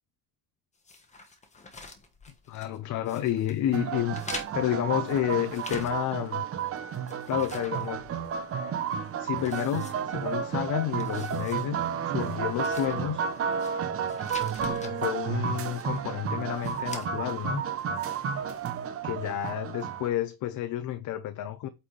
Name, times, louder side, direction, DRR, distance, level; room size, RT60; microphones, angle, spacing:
sound 1, 0.8-2.8 3.1-3.6 4.1-6.3 6.6-8.5 8.9-9.0 9.4-10.5 10.9-11.7 12.0-12.1 12.5-13.7 14.1-14.9 15.6-16.1 16.5-17.1, left 3 dB, 15° left, 1.3 m, -45 dB
voice 1, 2.5-4.2 4.5-6.4 6.8-6.9 7.3-8.1 9.2-13.2 14.6-17.6 19.0-21.7, left 12 dB, 50° left, 0.6 m, -30 dB
sound 2, 3.7-20.1, right 7 dB, 35° right, 0.8 m, -32 dB
8.5 x 4.2 x 3.2 m
cardioid pair, 140°, 39 cm